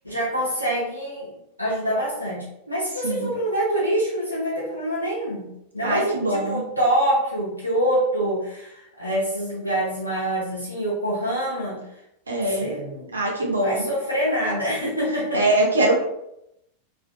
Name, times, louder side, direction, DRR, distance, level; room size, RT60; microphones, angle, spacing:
voice 1, 0.0-1.3 1.6-5.5 5.7-11.8 12.5-13.2 13.6-15.4, right 1 dB, 90° left, -8 dB, 0.6 m, -25 dB
voice 2, 3.0-3.3 5.8-6.6 12.3-12.7 13.1-13.9 15.3-16.0, right 1 dB, 75° right, -2 dB, 0.7 m, -22 dB
2.5 x 2.4 x 2.3 m, 0.82 s
figure-of-eight pair, 90°, 0 cm